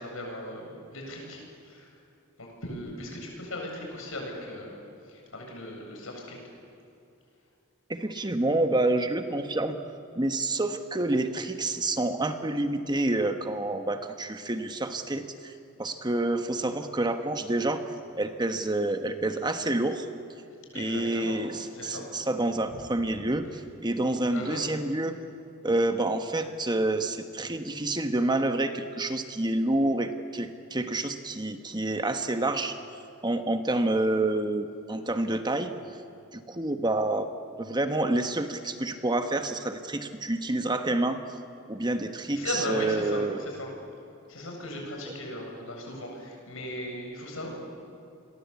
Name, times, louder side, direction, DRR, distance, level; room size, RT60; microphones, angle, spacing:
voice 1, 0.0-1.9 2.4-6.4 20.7-21.4 21.7-22.0 22.7-22.8 24.3-24.6 42.3-43.7 44.3-47.5, left 1 dB, 70° left, 1 dB, 7.8 m, -37 dB
voice 2, 7.9-9.8 10.1-15.5 15.8-17.8 18.2-20.1 20.7-25.2 25.6-32.8 33.2-35.7 36.3-37.3 37.6-41.2 41.7-43.4, right 2 dB, 20° right, 7 dB, 1.3 m, -28 dB
29.5 x 22.5 x 8.4 m, 2.6 s
head